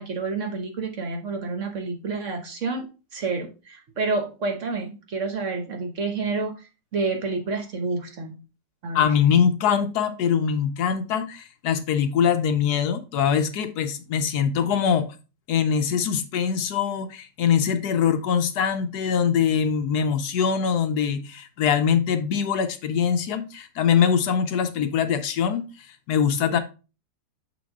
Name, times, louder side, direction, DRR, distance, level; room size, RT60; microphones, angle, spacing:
voice 1, 0.0-2.9 3.1-8.4 8.8-9.1, right 3 dB, 50° right, 1.1 m, -29 dB
voice 2, 8.9-15.1 15.5-26.6, left 7 dB, 70° left, 1.1 m, -23 dB
6.9 x 3.9 x 3.5 m
omnidirectional pair, 1.8 m